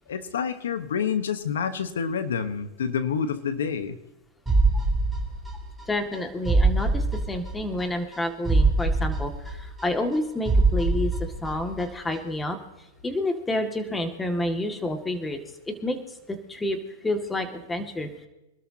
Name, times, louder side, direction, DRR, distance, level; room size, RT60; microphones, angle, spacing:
voice 1, 0.1-4.0, left 7 dB, 80° left, 11 dB, 1.2 m, -28 dB
sound 1, 4.5-5.8 6.1-6.2 6.5-7.8 8.1-8.2 8.5-10.2 10.5-11.8 12.1-12.2, right 3 dB, 10° right, 3.3 m, -23 dB
voice 2, 5.9-11.1 11.4-12.6 13.0-15.4 15.7-16.0 16.3-16.8 17.0-18.3, left 1 dB, 10° left, 5 dB, 2.1 m, -29 dB
26.0 x 13.0 x 2.9 m, 0.99 s
hypercardioid pair, 115°, 0 cm